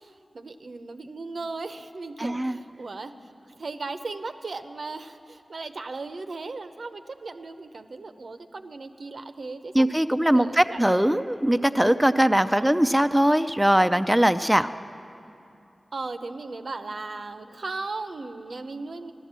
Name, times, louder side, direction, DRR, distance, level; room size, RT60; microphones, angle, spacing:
voice 1, 0.0-3.1 3.5-10.8 12.6-12.7 15.9-19.1, right 3 dB, 80° right, 8 dB, 0.7 m, -37 dB
voice 2, 2.2-2.6 9.7-14.7, right 1 dB, 10° right, 9 dB, 0.4 m, -21 dB
15.5 x 12.0 x 7.4 m, 2.7 s
cardioid pair, 45°, 0 cm